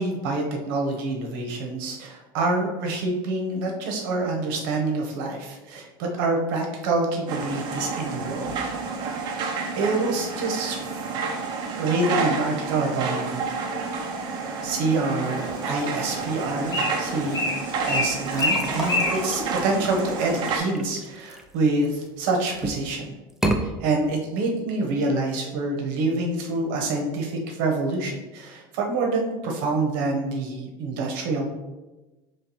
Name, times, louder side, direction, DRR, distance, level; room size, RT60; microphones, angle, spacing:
voice 1, 0.0-8.5 9.1-9.4 9.8-10.8 11.8-13.7 14.6-17.4 17.9-23.1 23.6-31.5, right 2 dB, 75° right, 1 dB, 0.9 m, -26 dB
sound 1, 7.3-20.6, right 4 dB, 40° right, 0.7 m, -30 dB
Bird, 15.2-20.3, left 2 dB, 35° left, 1.3 m, -30 dB
sound 2, 18.3-22.1 22.5-22.9 23.3-23.6, right 1 dB, 5° right, 0.3 m, -30 dB
5.8 x 3.1 x 2.9 m, 1.1 s
cardioid pair, 155°, 11 cm